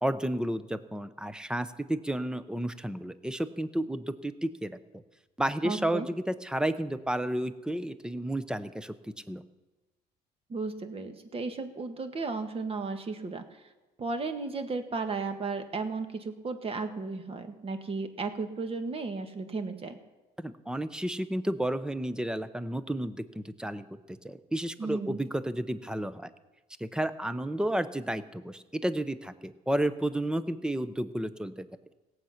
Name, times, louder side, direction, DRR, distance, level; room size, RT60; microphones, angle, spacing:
voice 1, 0.0-5.0 5.4-9.4 20.4-26.3 26.8-31.7, right 1 dB, 5° right, 13 dB, 0.7 m, -32 dB
voice 2, 5.6-6.1 10.5-13.6 14.0-20.0 24.8-25.2, right 4 dB, 35° right, 8 dB, 1.6 m, -34 dB
17.5 x 8.0 x 5.8 m, 1.1 s
cardioid pair, 110°, 17 cm